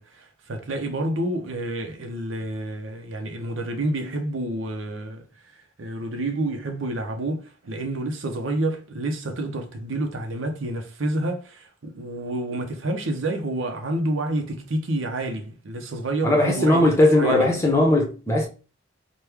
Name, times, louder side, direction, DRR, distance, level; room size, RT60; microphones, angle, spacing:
voice 1, 0.0-5.3 5.5-17.5, right 1 dB, 70° right, 0.7 m, -29 dB
voice 2, 16.2-18.5, left 1 dB, 15° left, 0.9 m, -19 dB
3.0 x 2.2 x 3.4 m
head